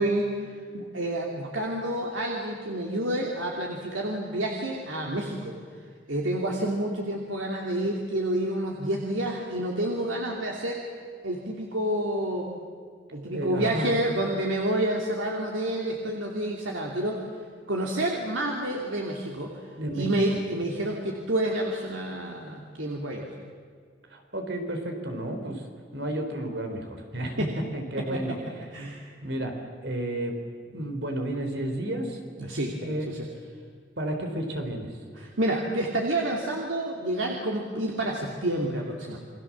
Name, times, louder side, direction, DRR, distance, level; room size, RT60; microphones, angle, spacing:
voice 1, 0.0-5.5 6.1-10.8 11.2-12.5 13.1-17.2 17.7-19.5 19.9-23.3 27.4-27.5 28.0-28.2 28.7-29.0 32.4-32.8 33.1-33.2 35.2-39.2, right 1 dB, 85° right, -1 dB, 2.9 m, -29 dB
voice 2, 13.2-14.2 19.8-20.1 24.1-25.7 25.9-28.4 29.2-30.4 30.7-32.2 32.8-33.2 34.0-35.0, right 1 dB, 60° right, 4 dB, 4.0 m, -32 dB
29.0 x 23.0 x 7.4 m, 2.1 s
head